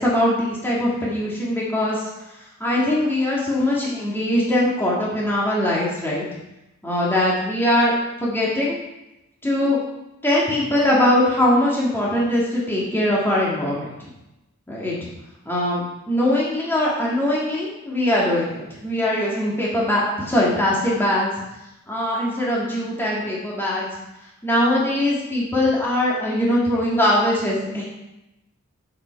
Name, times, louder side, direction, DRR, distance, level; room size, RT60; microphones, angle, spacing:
voice 1, 0.0-2.1 2.6-6.2 6.8-7.9 8.2-8.8 9.4-9.8 10.2-13.9 14.7-15.1 15.5-21.3 21.9-23.9 24.4-27.8, left 1 dB, 10° left, -6 dB, 2.1 m, -21 dB
8.6 x 7.8 x 4.6 m, 0.94 s
head